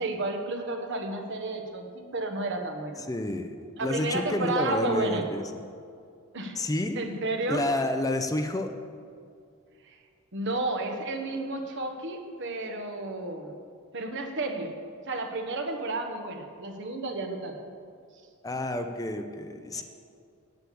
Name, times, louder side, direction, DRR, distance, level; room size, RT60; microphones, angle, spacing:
voice 1, 0.0-3.0 3.8-5.2 6.3-6.6 6.9-7.7 9.8-10.0 10.3-13.6 13.9-14.7 15.1-17.6 19.7-19.8, right 2 dB, 60° right, 4 dB, 1.3 m, -32 dB
voice 2, 3.1-5.4 6.6-7.0 7.5-8.7 18.4-19.8, left 1 dB, 15° left, 7 dB, 0.5 m, -29 dB
8.4 x 8.0 x 8.5 m, 2.3 s
head